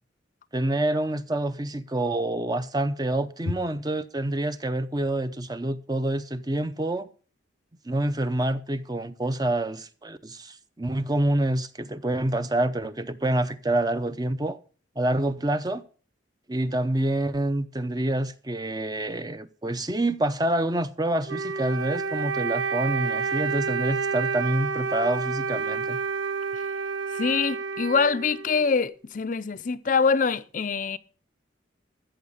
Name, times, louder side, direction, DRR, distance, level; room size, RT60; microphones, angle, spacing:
voice 1, 0.5-7.1 7.9-14.6 15.0-15.8 16.5-26.0, right 1 dB, 20° right, 0.7 m, -27 dB
Wind instrument woodwind instrument, 21.3-28.8, right 5 dB, 80° right, 0.7 m, -29 dB
voice 2, 27.1-31.0, left 5 dB, 45° left, 0.5 m, -24 dB
14.0 x 7.1 x 6.6 m
head